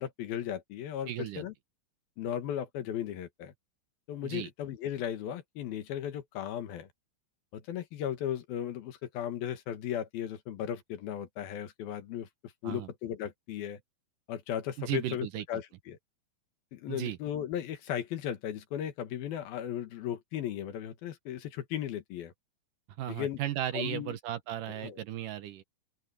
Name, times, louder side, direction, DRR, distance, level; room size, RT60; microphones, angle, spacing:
voice 1, 0.0-1.5 2.2-3.5 4.1-6.9 7.5-12.3 12.6-13.8 14.3-16.0 16.7-22.3 23.1-23.4 23.7-24.2 24.8-25.0, left 10 dB, 75° left, 3.4 m, -36 dB
voice 2, 1.1-1.4 4.2-4.5 12.6-12.9 14.8-15.4 16.9-17.2 23.0-25.6, right 12 dB, 70° right, 2.4 m, -35 dB
open air
omnidirectional pair, 4.3 m